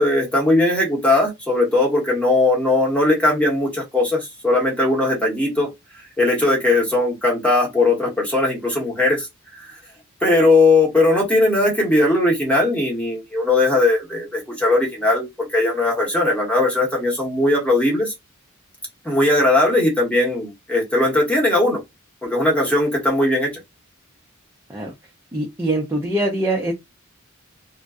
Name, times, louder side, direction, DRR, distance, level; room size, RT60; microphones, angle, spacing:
voice 1, 0.0-5.7 6.2-9.8 10.2-18.1 19.0-21.8 22.2-23.5, left 2 dB, 5° left, 1.0 m, -19 dB
voice 2, 25.3-26.7, right 1 dB, 10° right, 0.5 m, -23 dB
2.5 x 2.1 x 2.3 m
head